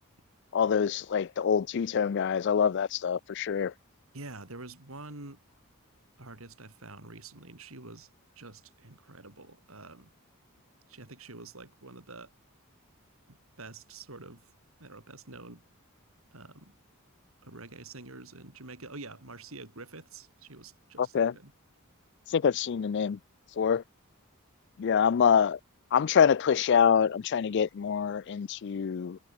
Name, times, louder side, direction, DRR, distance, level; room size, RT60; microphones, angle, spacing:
voice 1, 0.5-3.7 21.0-21.3 22.3-23.2 23.6-23.8 24.8-25.6 25.9-29.2, left 7 dB, 55° left, 0.4 m, -25 dB
voice 2, 4.1-5.4 6.2-8.1 8.4-10.1 10.9-12.3 13.3-14.5 14.8-15.6 16.3-16.7 17.4-21.5, right 3 dB, 70° right, 3.7 m, -47 dB
head